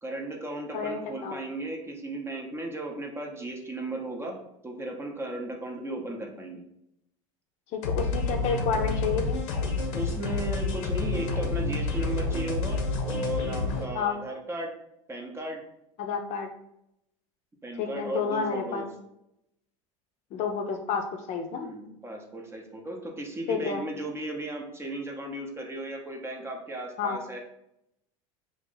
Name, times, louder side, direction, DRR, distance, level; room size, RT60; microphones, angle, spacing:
voice 1, 0.0-4.4 4.6-6.7 9.9-14.7 15.1-15.6 17.6-18.9 21.6-27.4, right 1 dB, 15° right, 1 dB, 0.6 m, -35 dB
voice 2, 0.7-1.4 7.7-9.4 13.9-14.2 16.0-16.5 17.8-18.9 20.3-21.7 23.5-23.8 27.0-27.2, left 5 dB, 45° left, 4 dB, 0.5 m, -30 dB
sound 1, 7.8-13.8, left 3 dB, 85° left, 0.7 m, -29 dB
2.8 x 2.5 x 3.7 m, 0.81 s
supercardioid pair, 105°, 16 cm